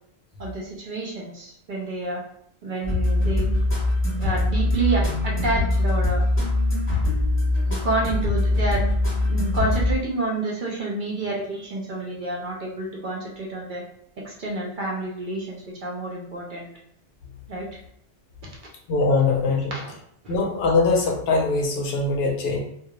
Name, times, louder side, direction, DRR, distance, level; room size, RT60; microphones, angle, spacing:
voice 1, 0.4-2.2 2.6-3.5 4.2-6.2 7.7-8.8 9.2-13.8 14.2-16.7 17.5-17.8 19.7-19.9 20.2-20.3, right 2 dB, 60° right, -3 dB, 0.6 m, -29 dB
sound 1, 2.8-9.9, left 2 dB, 15° left, 0.6 m, -22 dB
voice 2, 18.9-19.8 20.3-22.6, left 3 dB, 70° left, 0 dB, 0.8 m, -22 dB
2.3 x 2.0 x 2.9 m, 0.68 s
omnidirectional pair, 1.1 m